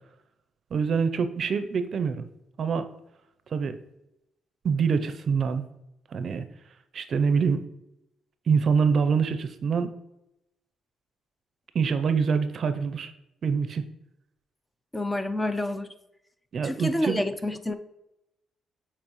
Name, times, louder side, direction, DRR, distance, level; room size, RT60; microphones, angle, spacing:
voice 1, 0.7-2.2 2.6-2.9 3.5-3.8 4.6-5.6 6.1-6.4 6.9-7.6 8.5-9.9 11.7-13.1 13.4-13.9 16.5-17.2, right 5 dB, 55° right, 10 dB, 0.5 m, -25 dB
voice 2, 14.9-15.9 16.6-17.8, left 1 dB, 15° left, 10 dB, 0.5 m, -28 dB
7.5 x 4.2 x 3.0 m, 0.86 s
cardioid pair, 90°, 0 cm